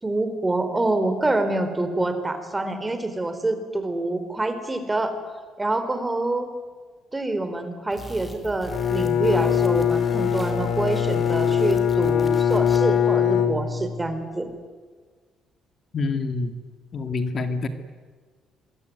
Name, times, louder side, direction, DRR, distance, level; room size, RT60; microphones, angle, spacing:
voice 1, 0.0-5.1 5.6-6.5 7.1-14.5, right 2 dB, 15° right, 9 dB, 4.0 m, -26 dB
sound 1, 7.9-13.0, left 1 dB, 15° left, 5.0 m, -40 dB
Bowed string instrument, 8.7-14.1, left 8 dB, 65° left, 2.9 m, -22 dB
voice 2, 15.9-16.5 16.9-17.7, left 3 dB, 45° left, 8 dB, 2.2 m, -26 dB
26.5 x 23.0 x 9.5 m, 1.5 s
cardioid pair, 120°, 0 cm